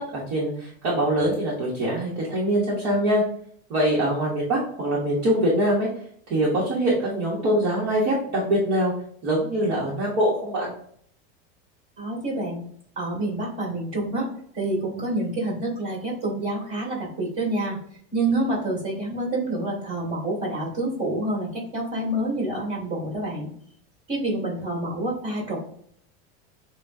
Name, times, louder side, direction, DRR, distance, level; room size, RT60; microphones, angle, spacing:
voice 1, 0.0-3.2 3.7-5.9 6.3-8.9 9.2-10.7, right 1 dB, 40° right, -5 dB, 1.2 m, -23 dB
voice 2, 12.0-12.7 13.0-14.3 14.5-17.8 18.1-23.5 24.1-25.6, right 1 dB, 20° right, -3 dB, 1.8 m, -27 dB
6.8 x 2.3 x 2.6 m, 0.63 s
supercardioid pair, 180°, 31 cm